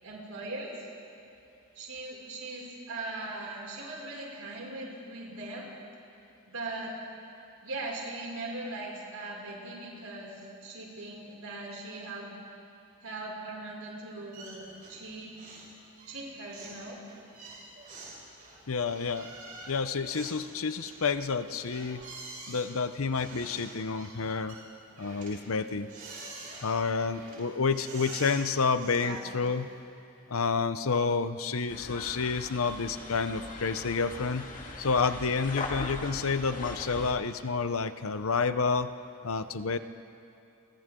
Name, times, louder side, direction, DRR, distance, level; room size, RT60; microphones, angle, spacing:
voice 1, 0.0-0.9 1.7-5.7 6.5-6.9 7.6-12.3 13.0-15.3 16.0-17.0 29.0-29.2, right 2 dB, 80° right, -3 dB, 5.9 m, -40 dB
sound 1, 14.3-15.1 15.3-15.7 16.0-29.8, right 3 dB, 40° right, 6.3 m, -47 dB
voice 2, 18.7-19.3 19.7-22.0 22.5-24.6 25.0-25.9 26.6-29.7 30.3-34.5 34.8-38.9 39.2-39.8, left 4 dB, 70° left, 11 dB, 0.8 m, -29 dB
sound 2, 31.7-37.1, left 2 dB, 35° left, 2.0 m, -40 dB
30.0 x 25.0 x 3.8 m, 2.8 s
head